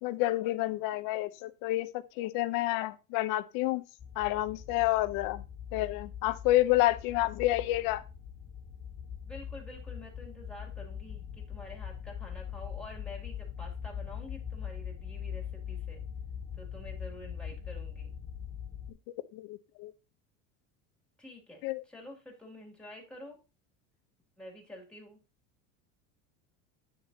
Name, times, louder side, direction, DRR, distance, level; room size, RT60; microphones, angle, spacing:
voice 1, 0.0-3.8 4.2-5.4 5.7-8.0 19.1-19.9 21.6-21.8, left 16 dB, 60° left, 0.8 m, -29 dB
sound 1, 4.0-18.9, left 8 dB, 25° left, 1.5 m, -42 dB
voice 2, 9.1-16.0 16.6-18.1 21.2-23.4 24.4-25.2, left 1 dB, 5° left, 2.6 m, -48 dB
9.5 x 6.7 x 2.8 m
cardioid pair, 145°, 38 cm